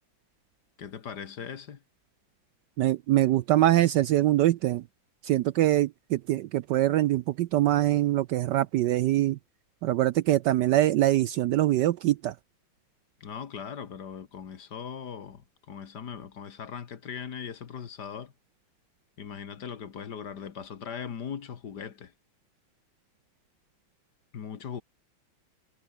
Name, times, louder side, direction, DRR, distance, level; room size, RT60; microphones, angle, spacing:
voice 1, 0.8-1.8 13.2-18.3 19.2-22.1 24.3-24.8, left 7 dB, 55° left, 2.0 m, -39 dB
voice 2, 2.8-4.8 5.2-9.4 9.8-12.3, right 14 dB, 70° right, 1.1 m, -23 dB
omnidirectional pair, 2.2 m